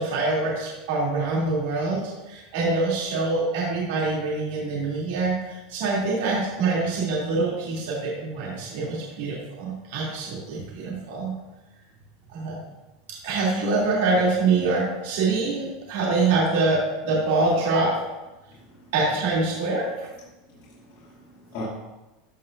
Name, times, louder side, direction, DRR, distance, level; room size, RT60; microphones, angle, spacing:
voice 1, 0.0-11.3 12.3-12.5 13.2-17.9 18.9-20.1, right 3 dB, 75° right, -5 dB, 3.0 m, -25 dB
voice 2, 18.5-18.9 20.5-21.6, left 2 dB, 60° left, -9 dB, 2.6 m, -41 dB
14.0 x 5.6 x 2.7 m, 1.1 s
supercardioid pair, 145°, 0 cm